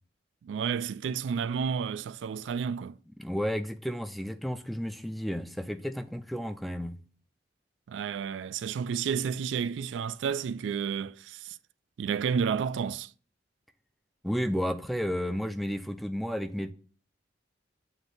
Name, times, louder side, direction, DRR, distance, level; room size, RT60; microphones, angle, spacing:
voice 1, 0.4-3.0 7.9-11.6 12.0-13.1, right 6 dB, 85° right, 0.3 m, -31 dB
voice 2, 3.2-7.0 14.2-16.7, equal, ahead, 0.3 m, -32 dB
7.9 x 2.7 x 5.8 m
head